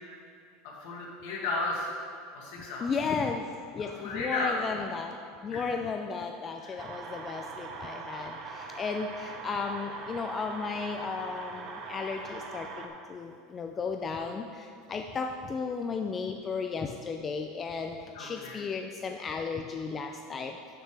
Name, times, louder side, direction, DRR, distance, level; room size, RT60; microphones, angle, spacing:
voice 1, 0.6-2.0 2.3-2.9 3.8-4.6 5.5-5.6 6.6-6.8 18.1-18.6, left 2 dB, 60° left, -3 dB, 2.2 m, -34 dB
voice 2, 2.8-3.5 3.7-5.2 5.4-20.6, left 5 dB, 15° left, 4 dB, 0.3 m, -34 dB
sound 1, 6.8-12.9, right 4 dB, 35° right, 0.8 m, -41 dB
12.5 x 6.6 x 3.4 m, 2.4 s
supercardioid pair, 175°, 0 cm